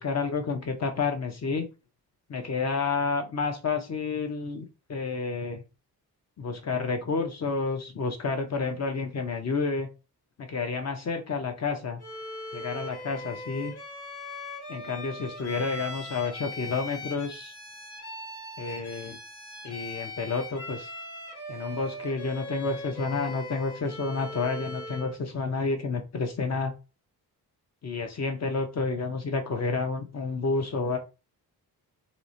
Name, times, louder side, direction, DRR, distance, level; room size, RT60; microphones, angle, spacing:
voice 1, 0.0-1.7 2.3-5.6 6.4-9.9 10.4-12.0 12.5-13.7 14.7-17.5 18.6-19.2 19.6-20.9 21.5-26.7 27.8-31.0, left 4 dB, 45° left, 5 dB, 0.6 m, -30 dB
Bowed string instrument, 12.0-25.2, left 1 dB, 85° left, 1.5 m, -40 dB
2.9 x 2.1 x 2.5 m, 0.30 s
cardioid pair, 85°, 38 cm